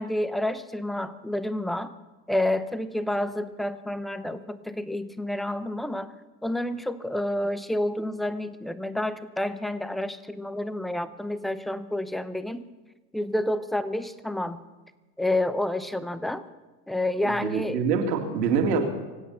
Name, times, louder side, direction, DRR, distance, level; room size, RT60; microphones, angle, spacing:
voice 1, 0.0-1.9 2.3-6.1 6.4-12.7 13.1-14.6 15.2-16.4 16.9-17.8, left 1 dB, ahead, 13 dB, 0.7 m, -29 dB
voice 2, 17.2-18.9, right 5 dB, 75° right, 3 dB, 2.4 m, -25 dB
25.5 x 8.7 x 5.7 m, 1.2 s
hypercardioid pair, 80°, 49 cm